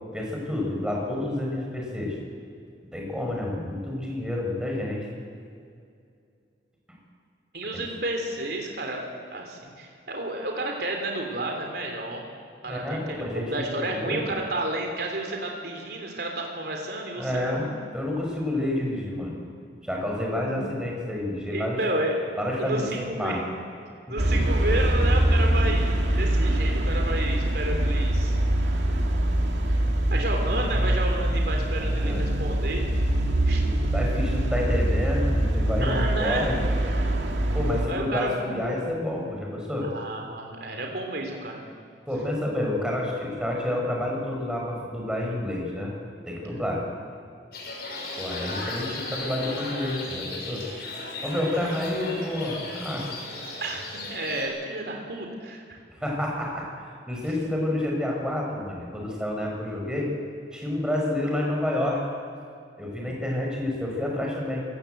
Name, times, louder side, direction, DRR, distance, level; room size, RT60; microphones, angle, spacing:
voice 1, 0.1-2.2 2.9-5.1 6.9-7.0 7.7-7.8 12.7-14.2 17.2-17.7 17.9-19.3 19.8-21.8 22.4-23.4 24.2-24.5 31.7-32.3 33.6-36.5 37.5-39.9 42.1-45.9 46.2-46.8 48.2-50.9 51.2-53.1 56.0-56.7 57.1-60.1 60.5-62.0 62.8-64.7, left 1 dB, 5° right, -1 dB, 5.9 m, -29 dB
voice 2, 7.5-9.1 9.3-12.2 12.6-17.7 20.4-20.6 21.5-22.2 22.6-23.6 24.1-28.4 29.7-29.8 30.1-32.8 33.5-33.6 35.8-36.5 37.9-38.5 39.8-41.6 53.6-55.8, right 2 dB, 60° right, 2 dB, 3.5 m, -31 dB
sound 1, 24.2-37.9, right 1 dB, 85° right, 2.3 m, -24 dB
sound 2, 47.5-54.4, left 2 dB, 60° left, 6.2 m, -36 dB
27.0 x 17.5 x 8.1 m, 2.4 s
head